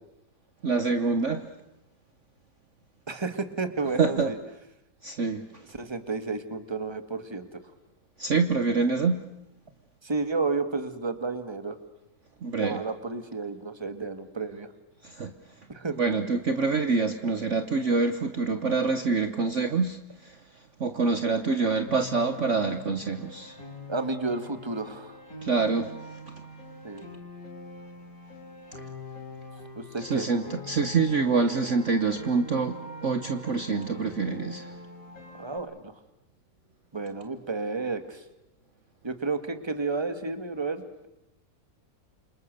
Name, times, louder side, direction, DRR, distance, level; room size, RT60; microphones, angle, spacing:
voice 1, 0.6-1.4 4.0-4.3 5.0-5.4 8.2-9.2 12.4-12.8 15.0-15.3 16.0-20.4 20.8-23.6 25.4-25.9 30.0-34.7, right 4 dB, 50° right, 8 dB, 1.3 m, -26 dB
voice 2, 3.1-4.4 5.7-7.6 10.0-11.8 12.5-14.7 15.7-16.0 23.9-25.2 26.8-27.1 29.8-30.3 35.3-35.9 36.9-38.2 39.0-41.1, right 3 dB, 15° right, 10 dB, 1.7 m, -32 dB
Piano, 21.9-35.6, left 2 dB, 55° left, 4.7 m, -43 dB
28.5 x 25.5 x 6.8 m, 0.90 s
omnidirectional pair, 1.8 m